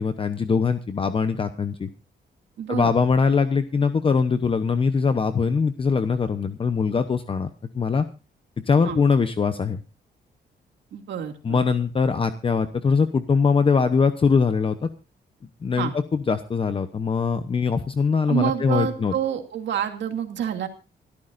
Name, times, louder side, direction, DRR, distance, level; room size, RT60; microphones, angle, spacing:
voice 1, 0.0-1.9 2.7-7.5 7.7-8.0 8.7-9.8 11.4-14.8 15.6-19.1, left 5 dB, 30° left, 9 dB, 0.9 m, -22 dB
voice 2, 2.6-2.9 8.8-9.0 10.9-11.6 15.8-15.9 18.3-20.7, right 9 dB, 80° right, 5 dB, 2.4 m, -28 dB
27.0 x 13.0 x 2.6 m, 0.32 s
cardioid pair, 140°, 18 cm